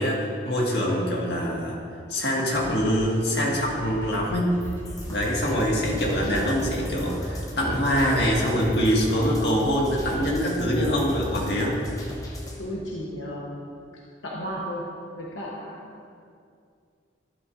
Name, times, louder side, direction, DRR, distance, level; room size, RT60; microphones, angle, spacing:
voice 1, 0.0-1.8 2.1-4.6 5.1-11.8, equal, 55° left, -3 dB, 2.0 m, -24 dB
sound 1, 2.5-10.3, equal, 15° right, 2.8 m, -42 dB
sound 2, 4.6-12.6, equal, 20° left, 1.0 m, -36 dB
voice 2, 12.6-13.7 14.2-14.9 15.1-15.9, equal, 85° left, -4 dB, 1.2 m, -34 dB
12.0 x 12.0 x 2.7 m, 2.3 s
head